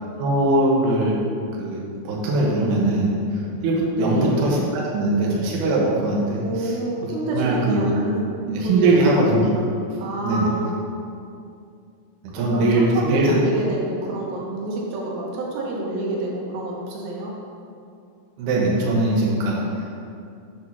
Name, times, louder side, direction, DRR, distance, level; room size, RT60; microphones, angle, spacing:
voice 1, 0.2-1.3 1.6-1.8 2.0-6.7 7.3-7.9 8.5-9.4 10.2-10.5 12.2-13.5 18.4-20.0, right 2 dB, 65° right, -4 dB, 2.3 m, -21 dB
voice 2, 3.9-4.5 6.4-8.2 8.6-9.2 10.0-10.7 12.4-17.4, right 2 dB, 85° right, -2 dB, 3.2 m, -28 dB
8.6 x 3.8 x 6.1 m, 2.4 s
omnidirectional pair, 4.8 m